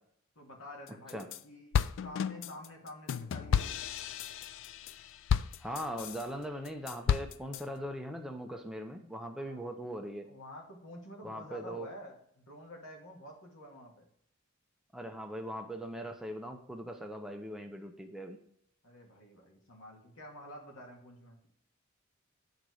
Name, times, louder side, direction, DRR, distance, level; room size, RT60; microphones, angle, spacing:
voice 1, 0.4-3.9 9.4-9.6 10.2-14.1 18.8-21.4, left 1 dB, 85° left, 0 dB, 2.2 m, -49 dB
sound 1, 0.9-1.4 1.7-6.2 6.7-7.6, left 7 dB, 65° left, 0.3 m, -32 dB
voice 2, 5.6-10.3 11.2-11.9 14.9-18.4, equal, ahead, 4 dB, 0.7 m, -40 dB
10.0 x 3.9 x 4.8 m, 0.68 s
head